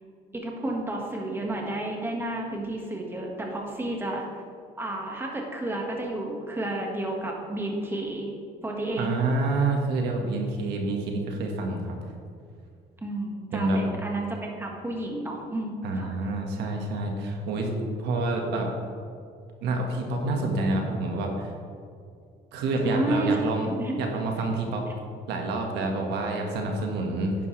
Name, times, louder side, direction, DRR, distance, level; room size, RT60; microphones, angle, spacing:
voice 1, 0.3-4.4 4.8-8.3 8.6-9.1 13.0-16.2 22.8-23.5 23.8-23.9, right 1 dB, 15° right, 0 dB, 1.7 m, -31 dB
voice 2, 9.0-11.9 13.5-13.8 15.8-17.7 18.0-18.7 19.6-21.5 22.5-23.7 24.0-24.8 25.3-27.4, right 2 dB, 80° right, 1 dB, 1.7 m, -28 dB
10.5 x 9.9 x 3.3 m, 2.3 s
cardioid pair, 110°, 17 cm